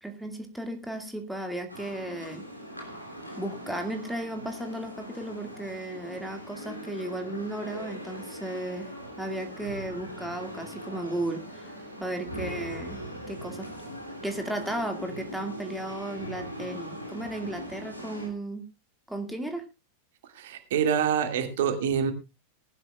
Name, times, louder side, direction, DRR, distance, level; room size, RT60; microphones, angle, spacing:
voice 1, 0.0-2.4 3.4-8.9 9.2-11.7 12.0-13.7 14.2-18.6 19.1-19.7, right 1 dB, 5° right, 4 dB, 2.2 m, -35 dB
sound 1, 1.7-18.3, equal, 90° left, 3.1 m, -41 dB
voice 2, 20.3-22.1, right 7 dB, 55° right, 6 dB, 2.3 m, -26 dB
19.5 x 12.0 x 2.4 m, 0.25 s
figure-of-eight pair, 90°, 0 cm